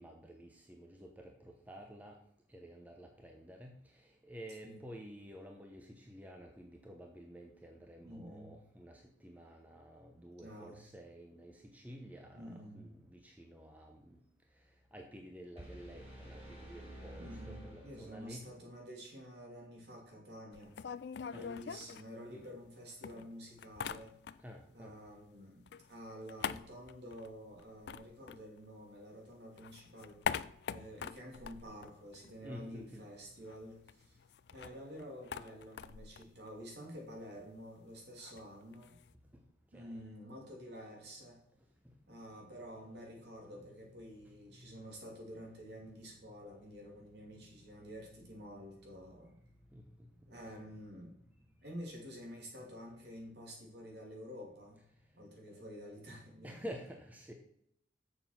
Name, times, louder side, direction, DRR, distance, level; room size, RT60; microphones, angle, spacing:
voice 1, 0.0-2.2 2.5-14.2 14.7-18.5 21.3-21.5 22.3-22.4 24.4-25.0 32.4-33.0 39.3-39.4 39.7-40.0 41.8-41.9 43.2-43.5 44.6-45.1 49.7-50.1 55.5-55.6 56.4-57.3, equal, 10° right, 2 dB, 0.9 m, -51 dB
voice 2, 8.0-8.6 10.1-10.8 12.3-13.0 17.2-20.8 21.3-24.1 24.7-30.2 30.7-34.2 34.5-39.0 39.7-41.4 42.1-49.4 50.3-51.2 51.6-54.9 55.1-56.7, equal, 60° right, 0 dB, 2.9 m, -49 dB
sound 1, 15.6-18.5, right 1 dB, 30° right, 4.4 m, -50 dB
sound 2, 20.5-22.7 23.0-24.7 24.9-29.1 29.4-32.7 33.0-33.1 33.3-39.1, left 7 dB, 60° left, 0.4 m, -44 dB
7.3 x 6.7 x 5.9 m, 0.72 s
head